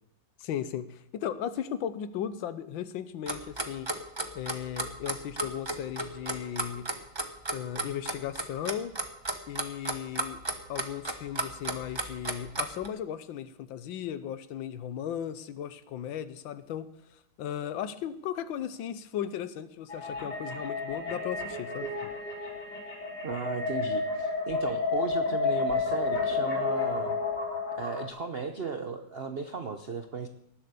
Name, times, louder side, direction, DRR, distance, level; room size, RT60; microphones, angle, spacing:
voice 1, 0.4-3.9 4.3-6.9 7.5-8.9 9.5-10.4 10.7-16.9 17.4-22.1, left 10 dB, 80° left, 13 dB, 1.5 m, -36 dB
Clock, 3.3-12.9, right 2 dB, 20° right, 0.8 m, -33 dB
sound 1, 19.9-28.1, left 4 dB, 55° left, 4.2 m, -31 dB
voice 2, 23.2-27.2 27.7-30.3, right 5 dB, 60° right, 7 dB, 0.6 m, -36 dB
18.5 x 7.7 x 6.8 m, 0.80 s
omnidirectional pair, 2.2 m